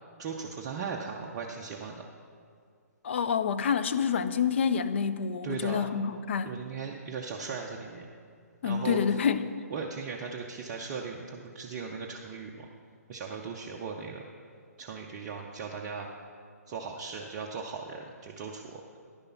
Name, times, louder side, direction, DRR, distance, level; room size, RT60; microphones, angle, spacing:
voice 1, 0.2-2.0 5.4-5.9 6.4-8.1 8.6-9.2 9.7-12.7 13.1-14.2 14.8-16.1 16.7-18.8, right 5 dB, 25° right, 0 dB, 0.6 m, -38 dB
voice 2, 3.0-6.6 8.6-9.5, left 7 dB, 45° left, 11 dB, 0.5 m, -28 dB
10.5 x 6.8 x 5.5 m, 2.2 s
figure-of-eight pair, 135°, 9 cm